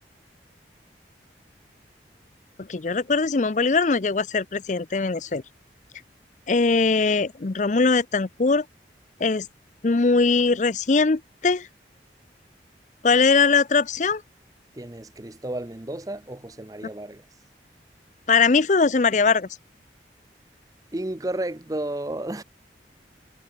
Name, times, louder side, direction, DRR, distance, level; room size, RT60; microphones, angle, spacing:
voice 1, 2.6-5.4 6.5-8.6 9.2-9.5 9.8-11.7 13.0-14.2 18.3-19.5, left 4 dB, 40° left, 0.5 m, -21 dB
voice 2, 14.7-17.3 20.9-22.4, right 1 dB, 20° right, 0.7 m, -32 dB
head